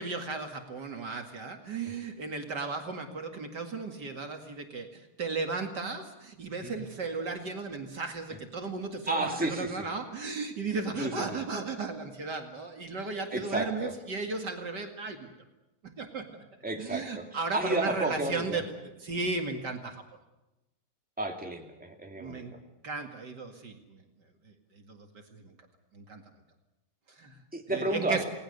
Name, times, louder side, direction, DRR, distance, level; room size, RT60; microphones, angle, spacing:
voice 1, 0.0-15.3 16.0-16.3 16.8-18.6 19.0-20.0 22.2-22.5 22.8-24.0 24.5-25.5 25.9-26.2 27.1-27.4 27.7-28.2, right 4 dB, 55° right, 4 dB, 2.7 m, -35 dB
voice 2, 9.1-9.8 11.0-11.4 13.3-13.9 16.6-18.6 21.2-22.4 27.5-28.2, right 2 dB, 5° right, 2 dB, 2.8 m, -32 dB
30.0 x 19.5 x 6.7 m, 0.97 s
omnidirectional pair, 2.2 m